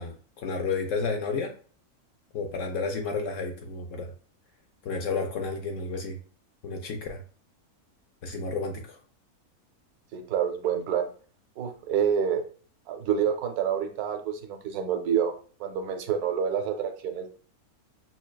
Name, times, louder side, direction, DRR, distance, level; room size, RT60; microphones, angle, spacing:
voice 1, 0.0-1.5 2.3-4.1 4.8-6.2 6.6-7.2 8.2-9.0, left 4 dB, 65° left, 4 dB, 0.8 m, -31 dB
voice 2, 10.1-11.1 11.6-12.4 12.9-15.3 15.6-17.3, right 8 dB, 80° right, 6 dB, 1.1 m, -27 dB
5.9 x 2.3 x 2.2 m, 0.42 s
omnidirectional pair, 1.6 m